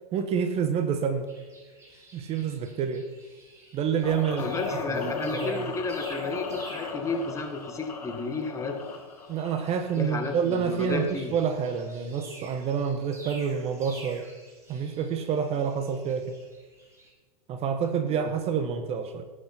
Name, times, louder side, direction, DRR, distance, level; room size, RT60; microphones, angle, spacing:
voice 1, 0.1-1.3 2.1-3.0 3.7-5.7 9.3-14.3 14.7-16.3 17.5-19.2, right 7 dB, 30° right, 8 dB, 1.4 m, -28 dB
sound 1, 1.3-7.9 8.3-17.1, right 2 dB, 15° right, 4.5 m, -50 dB
sound 2, 4.0-10.0, left 4 dB, 85° left, 2.6 m, -36 dB
voice 2, 4.4-8.8 9.9-11.3 18.2-18.3, left 3 dB, 15° left, 4 dB, 2.0 m, -32 dB
19.0 x 8.9 x 4.5 m, 1.4 s
hypercardioid pair, 115°, 20 cm